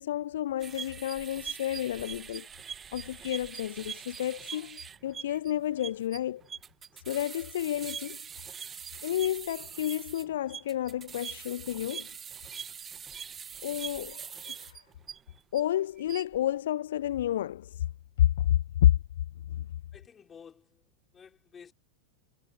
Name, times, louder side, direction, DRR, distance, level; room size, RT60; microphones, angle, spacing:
voice 1, 0.0-2.5 2.9-6.4 7.1-8.2 9.0-12.1 13.6-14.8 15.5-17.8 18.2-18.5 18.8-18.9 19.5-19.6, left 12 dB, 60° left, 0.4 m, -30 dB
sound 1, 0.6-15.6 16.0-16.4, right 7 dB, 20° right, 0.4 m, -42 dB
voice 2, 19.9-21.7, left 7 dB, 20° left, 4.4 m, -53 dB
figure-of-eight pair, 90°, 0 cm